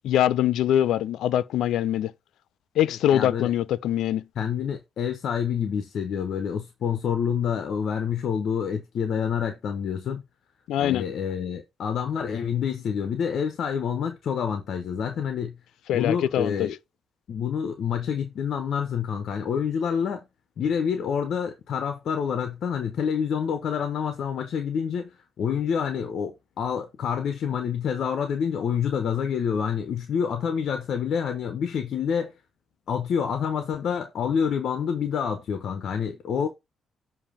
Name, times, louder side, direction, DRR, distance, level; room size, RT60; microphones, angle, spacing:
voice 1, 0.0-2.1 2.8-4.2 10.7-11.0 15.9-16.7, left 11 dB, 85° left, 0.3 m, -23 dB
voice 2, 2.9-3.5 4.3-10.2 10.8-15.5 15.9-16.8 17.3-20.2 20.6-32.3 32.9-36.5, left 7 dB, 65° left, 0.9 m, -27 dB
7.4 x 2.8 x 5.0 m
cardioid pair, 95°, 0 cm